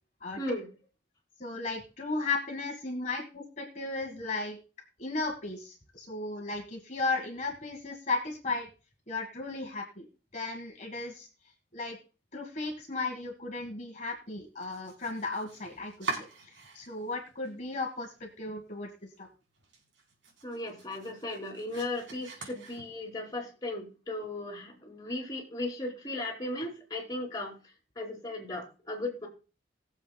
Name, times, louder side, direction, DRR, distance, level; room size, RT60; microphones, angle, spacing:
voice 1, 1.4-4.6 5.0-8.7 9.1-10.0 10.3-11.3 11.7-12.0 12.3-16.1 16.7-18.9 19.2-19.3, left 3 dB, 40° left, 2 dB, 1.6 m, -35 dB
Domestic sounds home sounds, 14.5-17.1 17.4-18.2 18.5-18.6 19.1-19.2 19.5-23.2, right 3 dB, 80° right, 3.9 m, -43 dB
voice 2, 20.4-27.5 28.0-29.3, left 2 dB, 20° left, 0 dB, 3.0 m, -36 dB
20.5 x 7.4 x 2.3 m, 0.34 s
head